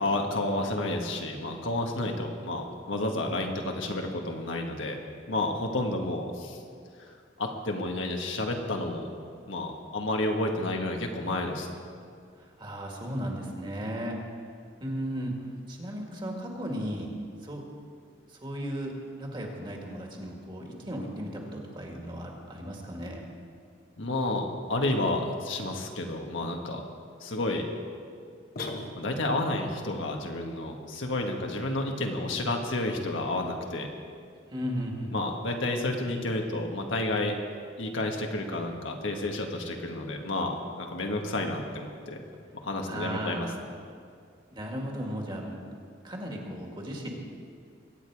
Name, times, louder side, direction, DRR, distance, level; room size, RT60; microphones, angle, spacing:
voice 1, 0.0-5.0 5.3-6.6 7.0-7.1 7.4-9.1 9.5-11.7 24.0-26.8 27.2-27.7 29.0-33.9 35.1-37.3 37.8-42.2 42.6-43.5, left 2 dB, 85° left, 2 dB, 1.6 m, -30 dB
voice 2, 12.4-14.2 14.8-15.3 15.7-17.1 17.4-17.6 18.4-18.9 19.2-23.2 34.5-35.2 42.9-43.6 44.5-45.6 46.0-47.1, equal, 25° right, 0 dB, 1.9 m, -35 dB
sound 1, 28.6-29.5, left 2 dB, 50° left, 1.2 m, -38 dB
22.5 x 9.0 x 4.8 m, 2.2 s
head